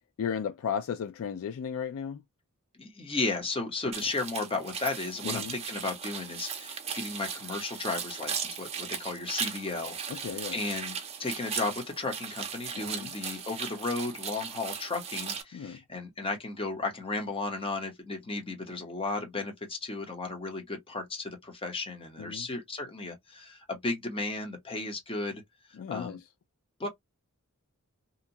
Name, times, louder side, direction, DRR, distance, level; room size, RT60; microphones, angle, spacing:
voice 1, 0.2-2.2 5.2-5.6 10.1-10.6 12.8-13.1 15.5-15.8 22.2-22.5 25.8-26.2, left 7 dB, 65° left, 0.3 m, -35 dB
voice 2, 2.7-25.4 25.9-26.2 26.8-26.9, left 3 dB, 25° left, 0.8 m, -34 dB
sound 1, 3.9-15.4, right 7 dB, 30° right, 0.6 m, -37 dB
2.8 x 2.2 x 2.7 m
head